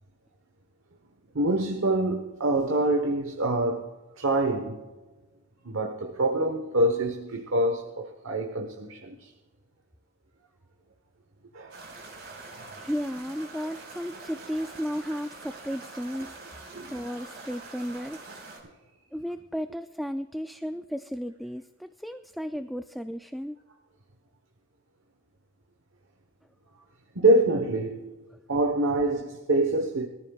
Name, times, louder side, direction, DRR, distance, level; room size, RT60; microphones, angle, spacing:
voice 1, 1.3-3.9 4.2-4.8 5.6-9.3 11.5-11.8 16.7-17.0 27.1-28.1 28.5-30.1, right 1 dB, 80° right, 1.1 m, -25 dB
sound 1, 11.7-18.6, right 3 dB, 55° right, 4.9 m, -44 dB
voice 2, 12.8-16.4 16.9-18.3 19.1-23.6, equal, ahead, 0.3 m, -34 dB
23.0 x 14.0 x 2.4 m
head